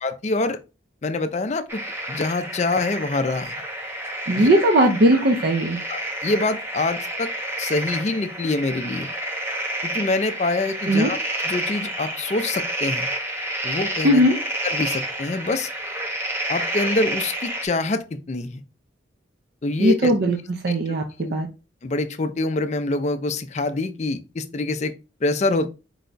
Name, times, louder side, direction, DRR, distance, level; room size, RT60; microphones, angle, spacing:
voice 1, 0.0-0.6 1.0-1.8 2.1-3.6 4.3-4.5 5.9-7.3 7.6-9.1 9.8-11.2 11.4-13.1 13.6-14.2 14.6-15.7 16.5-18.6 19.6-20.1 20.7-20.8 21.2-21.3 21.8-24.9 25.2-25.7, left 2 dB, 35° left, 0.4 m, -25 dB
sound 1, 1.7-17.7, right 1 dB, 15° right, 0.6 m, -29 dB
voice 2, 4.3-5.8 10.9-11.1 14.0-14.4 19.8-20.4 20.6-21.5, right 1 dB, 55° right, 0.5 m, -18 dB
4.7 x 2.2 x 3.9 m
head